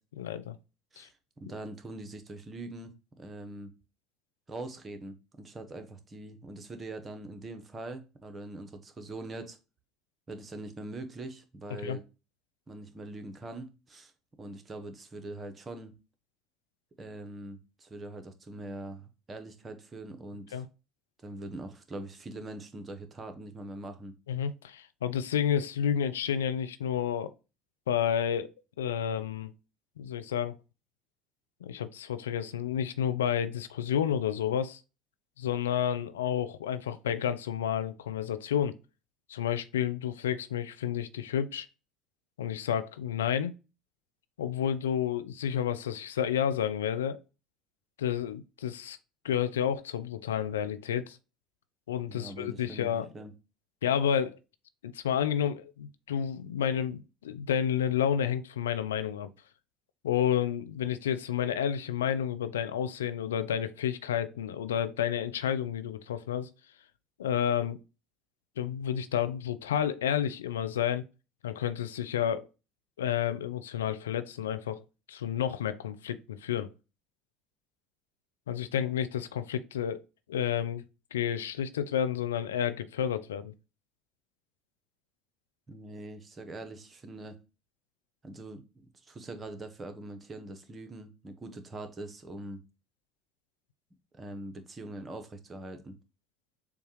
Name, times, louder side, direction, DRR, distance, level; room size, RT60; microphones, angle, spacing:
voice 1, 0.2-0.6 1.0-1.1 11.7-12.0 20.5-20.7 24.3-27.3 27.9-28.5 28.8-29.5 30.0-30.5 31.6-34.8 35.4-38.7 39.3-41.7 42.4-43.5 44.4-47.2 48.0-49.0 49.2-51.2 51.9-53.1 53.8-54.4 54.8-59.3 60.0-66.5 67.2-67.8 68.6-71.0 71.4-72.5 73.0-74.8 75.1-76.7 78.5-80.0 80.3-80.8 81.1-83.5, left 9 dB, 80° left, 0.4 m, -30 dB
voice 2, 1.4-3.7 4.5-9.6 10.3-12.0 12.7-14.1 14.4-15.9 17.0-20.6 21.2-24.2 52.1-53.3 85.7-87.4 88.2-92.6 94.1-96.0, right 2 dB, 30° right, 1.0 m, -43 dB
6.9 x 2.3 x 3.1 m
figure-of-eight pair, 65°, 0 cm